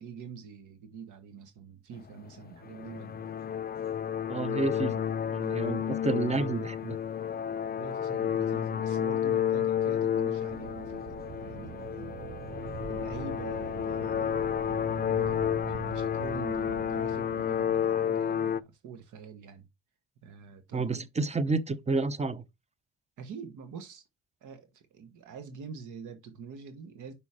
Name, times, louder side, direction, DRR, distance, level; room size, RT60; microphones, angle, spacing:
voice 1, 0.0-3.3 7.8-12.4 12.9-15.0 15.6-19.7 20.2-21.1 23.2-24.0 24.4-27.1, right 6 dB, 80° right, 1.5 m, -45 dB
sound 1, 2.0-18.6, left 9 dB, 30° left, 0.5 m, -31 dB
voice 2, 4.3-5.0 5.3-7.0 20.7-22.4, right 3 dB, 20° right, 0.9 m, -30 dB
sound 2, 10.5-17.9, right 10 dB, 40° right, 0.5 m, -44 dB
5.6 x 5.3 x 5.0 m
cardioid pair, 90°, 30 cm